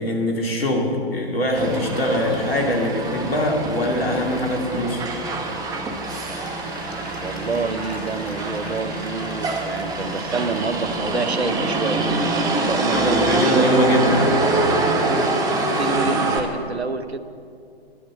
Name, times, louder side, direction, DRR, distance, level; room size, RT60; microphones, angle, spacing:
voice 1, 0.0-5.1 12.9-14.2, left 1 dB, 70° left, 1 dB, 2.6 m, -22 dB
Motor vehicle (road), 1.6-16.4, right 2 dB, 10° right, 1.1 m, -24 dB
Applause / Crowd, 5.2-14.1 14.7-14.8, left 1 dB, 85° left, 2.2 m, -41 dB
voice 2, 7.2-12.1 12.6-14.1 15.7-17.2, right 3 dB, 90° right, 11 dB, 0.9 m, -28 dB
11.5 x 7.9 x 9.2 m, 2.4 s
figure-of-eight pair, 125°, 31 cm